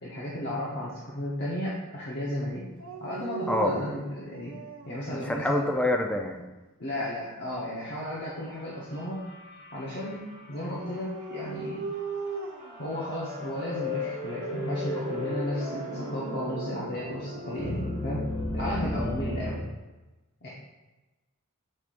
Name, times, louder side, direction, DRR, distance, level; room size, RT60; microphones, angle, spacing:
voice 1, 0.0-2.7 3.0-4.5 4.9-5.6 6.8-9.3 9.7-11.8 12.8-19.6 20.4-20.5, left 1 dB, 50° left, -6 dB, 1.0 m, -34 dB
Dog, 2.8-5.0 5.6-6.4 10.5-12.8 13.6-14.0 16.6-17.9, right 4 dB, 60° right, 0.6 m, -39 dB
voice 2, 3.5-3.9 5.1-6.4, left 1 dB, 5° left, 2 dB, 0.4 m, -27 dB
sound 1, 8.9-10.4 10.8-10.9 12.1-19.6, left 1 dB, 20° left, 1.8 m, -34 dB
7.6 x 5.0 x 2.5 m, 1.1 s
head